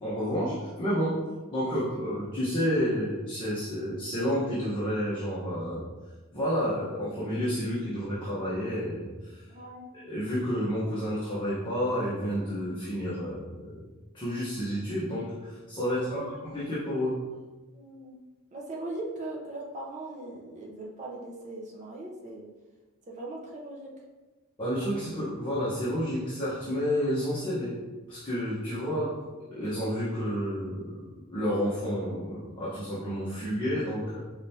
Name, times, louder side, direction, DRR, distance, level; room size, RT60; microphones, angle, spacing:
voice 1, 0.0-1.1 1.5-5.8 6.3-9.4 10.0-13.8 14.1-17.1 24.6-27.8 28.1-29.1 29.5-31.0 31.3-34.2, equal, 20° left, -10 dB, 1.0 m, -30 dB
voice 2, 9.5-9.8 16.0-16.3 17.7-18.2 18.5-22.5 23.1-23.9, right 2 dB, 35° right, -3 dB, 0.7 m, -39 dB
5.1 x 3.3 x 2.8 m, 1.2 s
head